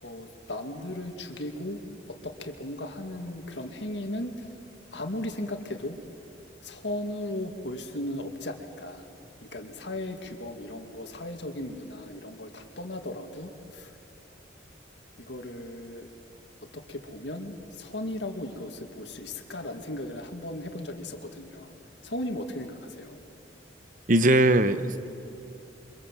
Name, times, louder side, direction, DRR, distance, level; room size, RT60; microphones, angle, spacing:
voice 1, 0.0-1.8 2.1-4.5 4.9-6.0 6.6-9.1 9.4-13.9 15.2-16.1 16.6-21.7 22.0-23.2, left 1 dB, 65° left, 5 dB, 2.3 m, -36 dB
voice 2, 24.1-25.0, right 1 dB, 45° right, 11 dB, 1.0 m, -20 dB
28.5 x 25.0 x 7.6 m, 2.8 s
head